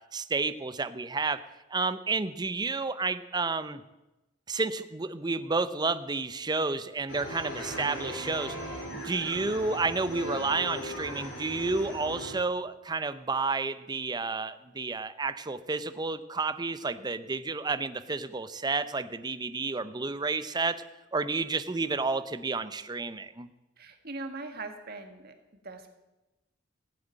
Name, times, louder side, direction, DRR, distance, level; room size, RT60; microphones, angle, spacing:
voice 1, 0.0-1.4 1.7-3.8 4.5-8.6 8.9-20.8 21.1-23.5, right 3 dB, 20° right, 12 dB, 0.6 m, -31 dB
sound 1, 7.1-12.3, equal, 65° left, 4.5 m, -38 dB
voice 2, 23.8-25.3 25.6-25.9, right 3 dB, 50° right, 6 dB, 1.7 m, -40 dB
16.0 x 7.8 x 9.1 m, 1.0 s
head